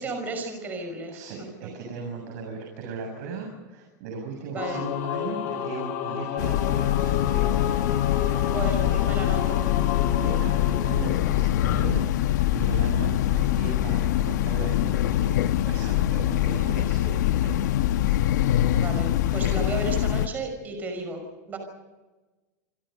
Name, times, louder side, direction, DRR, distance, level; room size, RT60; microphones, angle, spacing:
voice 1, 0.0-1.2 4.5-4.8 8.5-9.6 18.7-21.2 21.5-21.6, right 3 dB, 20° right, 4 dB, 5.7 m, -33 dB
voice 2, 1.1-7.9 8.2-8.5 8.8-9.0 10.0-15.4 15.6-18.1, right 4 dB, 55° right, 2 dB, 7.4 m, -37 dB
Singing / Musical instrument, 4.6-12.0, left 9 dB, 55° left, 7.2 m, -31 dB
Train, 6.4-20.3, left 12 dB, 80° left, 1.2 m, -24 dB
27.5 x 25.0 x 5.4 m, 1.2 s
supercardioid pair, 180°, 9 cm